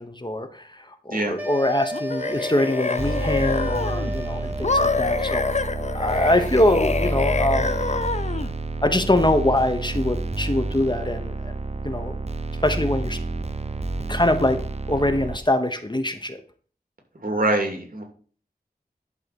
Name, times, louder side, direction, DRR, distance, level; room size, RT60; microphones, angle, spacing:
voice 1, 0.0-5.4 5.9-7.8 8.8-11.5 11.8-12.1 12.6-13.2 14.1-14.6 14.9-16.4, left 1 dB, 25° left, 7 dB, 1.1 m, -23 dB
sound 1, 1.4-4.9, left 1 dB, 10° right, 1.2 m, -33 dB
sound 2, 1.9-4.1 4.6-8.5, left 4 dB, 45° left, 0.6 m, -26 dB
sound 3, 3.0-15.4, right 2 dB, 40° right, 0.8 m, -29 dB
voice 2, 17.2-18.0, right 2 dB, 60° right, 3 dB, 2.7 m, -24 dB
11.0 x 3.9 x 6.9 m, 0.44 s
wide cardioid pair, 60°, 16 cm